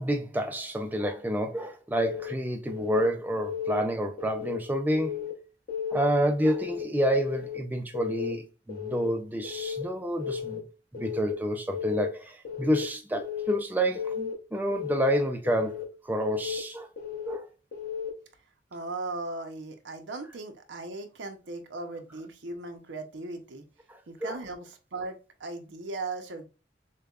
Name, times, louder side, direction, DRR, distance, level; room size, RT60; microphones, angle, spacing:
voice 1, 0.0-5.2 5.9-10.6 10.9-16.9 17.3-17.4 23.9-24.4, equal, 10° right, 0.4 m, -29 dB
Keyboard (musical) / Alarm, 1.9-2.3 2.7-3.1 3.4-3.8 4.2-4.6 4.9-5.3 5.7-6.1 6.4-6.8 7.2-7.6 7.9-8.3 8.7-9.1 9.4-9.8 10.2-10.6 10.9-11.3 11.7-12.1 12.4-12.8 13.2-13.6 13.9-14.3 14.7-15.1 15.5-15.8 16.2-16.6 17.0-17.3 17.7-18.1, left 8 dB, 55° left, 1.1 m, -34 dB
voice 2, 18.7-23.6 24.1-26.4, right 2 dB, 85° right, 0.7 m, -38 dB
6.6 x 2.2 x 2.3 m
head